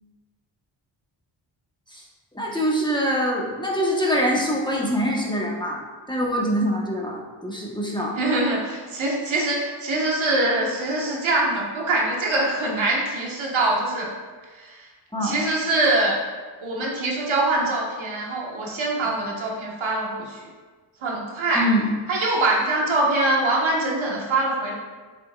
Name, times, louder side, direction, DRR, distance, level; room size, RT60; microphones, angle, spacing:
voice 1, 2.3-8.2 15.1-15.3 21.5-21.9, equal, 10° left, -3 dB, 1.3 m, -24 dB
voice 2, 8.2-14.1 14.5-14.9 15.2-16.2 16.6-20.4 21.0-21.7 22.1-24.7, right 2 dB, 70° right, -2 dB, 1.6 m, -23 dB
7.3 x 7.1 x 2.5 m, 1.4 s
cardioid pair, 70°, 49 cm